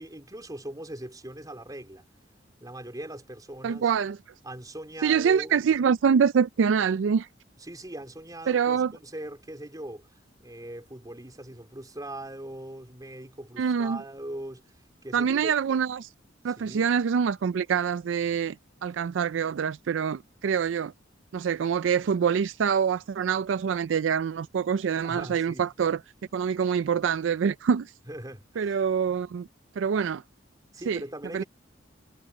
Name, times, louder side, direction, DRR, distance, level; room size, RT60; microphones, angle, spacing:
voice 1, 0.0-2.0 2.6-3.9 4.4-5.6 7.6-15.8 16.5-16.9 25.0-25.7 28.1-28.8 30.7-31.5, right 1 dB, 20° right, 3.7 m, -41 dB
voice 2, 3.6-4.2 5.0-7.3 8.5-8.9 13.6-14.0 15.1-16.1 16.4-18.6 18.8-20.9 21.3-26.0 26.3-27.9 28.6-29.5 29.8-30.2 30.9-31.0 31.3-31.4, right 7 dB, 80° right, 0.4 m, -25 dB
head